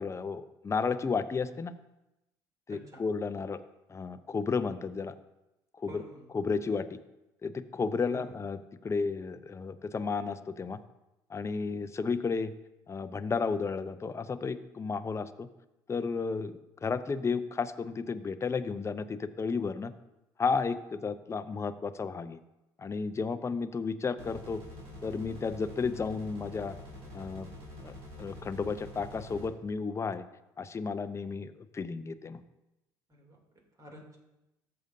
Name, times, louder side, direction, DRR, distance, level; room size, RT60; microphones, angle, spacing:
voice 1, 0.0-1.7 2.7-3.6 3.9-5.1 5.8-6.0 6.3-7.0 7.4-10.8 11.3-12.5 12.9-15.5 15.9-19.9 20.4-22.4 22.8-24.6 25.0-26.8 27.1-27.5 27.8-30.2 30.6-32.4, left 5 dB, 25° left, 11 dB, 0.6 m, -33 dB
voice 2, 2.7-3.0 5.9-6.3 8.1-8.4 33.1-34.2, right 2 dB, 30° right, 0 dB, 2.8 m, -49 dB
sound 1, 24.2-29.5, left 1 dB, 70° right, 3.1 m, -46 dB
14.0 x 6.7 x 2.7 m, 0.94 s
hypercardioid pair, 60°, 11 cm